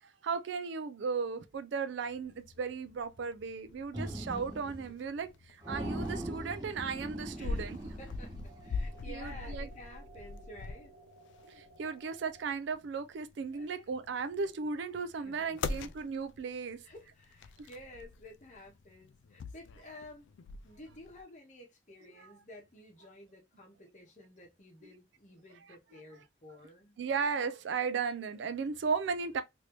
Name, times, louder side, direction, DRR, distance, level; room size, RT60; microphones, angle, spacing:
voice 1, 0.0-7.8 9.1-9.7 11.5-16.9 17.6-17.7 27.0-29.4, right 5 dB, 70° right, 0.4 m, -36 dB
sound 1, 2.1-21.2, left 4 dB, 75° left, 0.3 m, -44 dB
sound 2, 3.9-4.9 5.2-5.3 5.6-9.0, right 1 dB, 20° right, 0.6 m, -40 dB
voice 2, 7.4-10.9 13.6-13.9 15.1-15.9 16.8-20.3 20.6-27.0, left 1 dB, 40° left, 0.8 m, -52 dB
sound 3, 8.5-12.5, right 3 dB, 90° right, 0.9 m, -57 dB
3.2 x 2.6 x 2.9 m
head